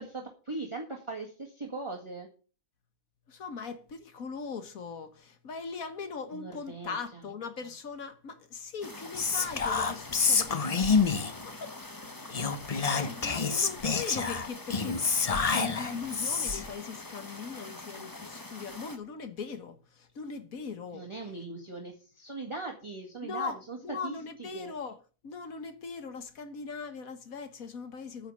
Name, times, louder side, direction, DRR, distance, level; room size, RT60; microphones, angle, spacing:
voice 1, 0.0-2.3 6.3-6.9 20.9-23.8 24.0-24.1 24.4-24.7, right 3 dB, 20° right, 1.9 m, -40 dB
voice 2, 3.3-11.0 11.4-21.1 23.2-28.3, left 5 dB, 60° left, 1.7 m, -40 dB
sound 1, 8.8-19.0, left 2 dB, 15° left, 1.0 m, -45 dB
Whispering, 9.1-11.5 12.3-16.7, left 5 dB, 35° left, 0.6 m, -28 dB
9.8 x 6.5 x 8.5 m
omnidirectional pair, 1.7 m